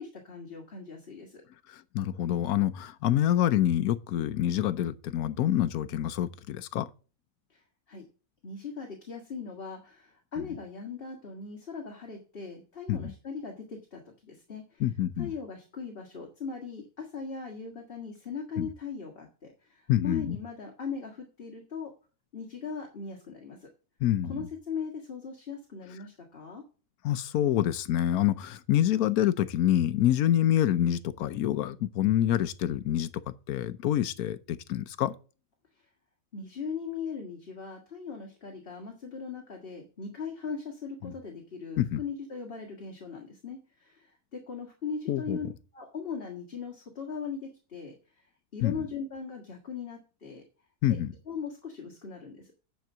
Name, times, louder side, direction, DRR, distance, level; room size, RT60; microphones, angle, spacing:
voice 1, 0.0-1.4 7.5-8.0 8.4-14.8 15.2-21.9 22.3-23.7 24.3-26.6 35.8-35.9 36.3-45.5 45.7-48.3 48.5-50.4 50.9-51.0 51.3-52.5, left 5 dB, 40° left, 1.8 m, -39 dB
voice 2, 1.7-6.9 12.9-13.1 14.8-15.3 18.6-18.7 19.9-20.4 24.0-24.4 27.0-33.2 33.5-35.1 41.0-41.1 41.8-42.0 45.1-45.4 48.6-48.7 50.8-51.1, left 12 dB, 85° left, 1.1 m, -26 dB
9.3 x 4.6 x 7.1 m
omnidirectional pair, 1.5 m